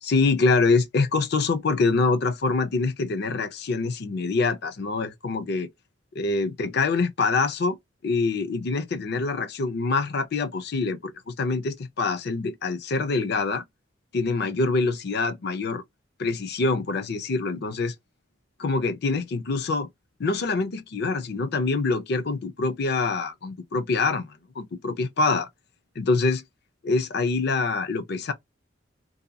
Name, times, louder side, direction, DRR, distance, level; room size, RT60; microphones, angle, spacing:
voice 1, 0.0-5.7 6.2-7.8 8.0-13.6 14.1-15.8 16.2-17.9 18.6-19.9 20.2-25.5 26.0-26.4 26.8-28.3, left 3 dB, 60° left, 0.5 m, -25 dB
2.7 x 2.2 x 2.7 m
head